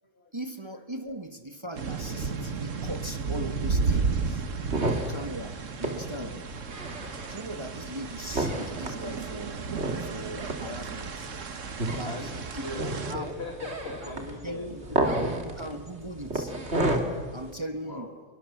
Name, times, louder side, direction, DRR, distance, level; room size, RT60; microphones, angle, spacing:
voice 1, 0.3-4.4 4.9-6.4 7.3-9.6 10.0-11.3 11.9-13.4 14.0-16.5 17.3-18.1, right 1 dB, 20° right, 7 dB, 1.5 m, -39 dB
sound 1, 1.7-13.1, right 4 dB, 80° right, 1.8 m, -33 dB
sound 2, 4.1-17.5, right 1 dB, 60° right, 3.1 m, -32 dB
voice 2, 12.1-15.0 17.8-18.1, left 3 dB, 55° left, 1 dB, 2.9 m, -40 dB
28.0 x 23.0 x 7.3 m, 1.5 s
omnidirectional pair, 1.3 m